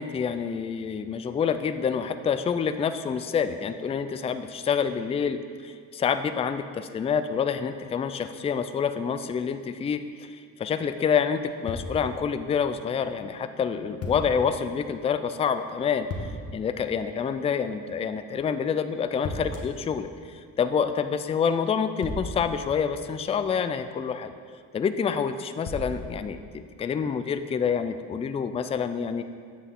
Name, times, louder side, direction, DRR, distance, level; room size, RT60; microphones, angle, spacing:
voice 1, 0.0-10.3 10.6-16.1 16.5-24.3 24.7-29.2, left 6 dB, 20° left, 10 dB, 0.3 m, -27 dB
sound 1, 11.7-12.4 14.0-14.6 16.1-16.7 19.2-19.9 22.0-23.4 25.7-26.5, left 2 dB, 45° left, 1.2 m, -36 dB
8.1 x 6.3 x 3.7 m, 2.1 s
supercardioid pair, 75°, 36 cm